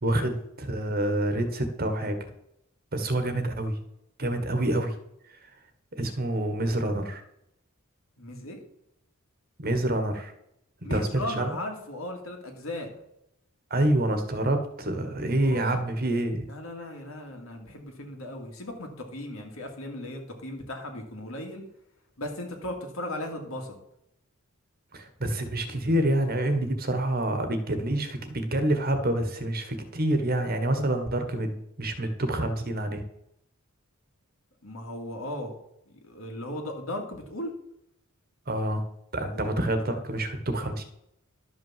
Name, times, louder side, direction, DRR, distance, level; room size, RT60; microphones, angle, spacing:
voice 1, 0.0-2.3 2.9-3.8 4.2-4.9 5.9-7.2 9.6-10.3 10.9-11.1 11.4-11.5 13.7-16.5 24.9-33.0 38.5-38.8 39.1-40.8, right 1 dB, 45° right, 7 dB, 1.5 m, -27 dB
voice 2, 8.2-8.6 10.8-12.9 15.4-15.7 16.5-21.6 22.2-23.7 34.6-35.5 35.9-37.5 39.3-39.5, left 1 dB, 70° left, 3 dB, 2.4 m, -37 dB
12.0 x 5.6 x 7.4 m, 0.80 s
head